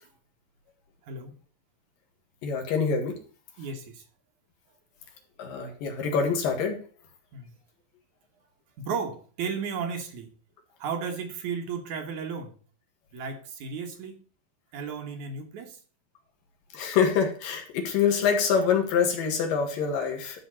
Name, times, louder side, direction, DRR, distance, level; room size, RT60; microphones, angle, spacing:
voice 1, 1.0-1.4 3.6-4.1 7.3-7.6 8.8-10.3 10.8-12.6 13.1-14.2 14.7-15.8, right 5 dB, 65° right, 4 dB, 2.4 m, -34 dB
voice 2, 2.4-3.2 5.4-6.8 16.7-20.4, left 6 dB, 75° left, 3 dB, 3.5 m, -25 dB
12.0 x 4.4 x 7.4 m, 0.40 s
omnidirectional pair, 4.1 m